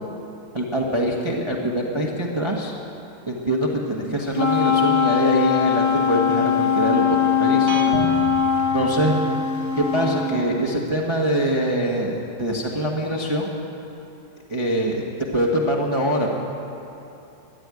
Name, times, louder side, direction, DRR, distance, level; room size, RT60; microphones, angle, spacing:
voice 1, 0.5-2.7 3.3-7.8 8.7-9.1 9.8-13.5 14.5-15.0 15.3-16.3, right 1 dB, 20° right, -2 dB, 1.0 m, -23 dB
Wind instrument woodwind instrument, 4.3-10.4, left 7 dB, 25° left, 0.3 m, -21 dB
sound 1, 7.7-9.7, right 4 dB, 60° right, 1.5 m, -32 dB
14.0 x 9.8 x 9.6 m, 2.9 s
omnidirectional pair, 2.2 m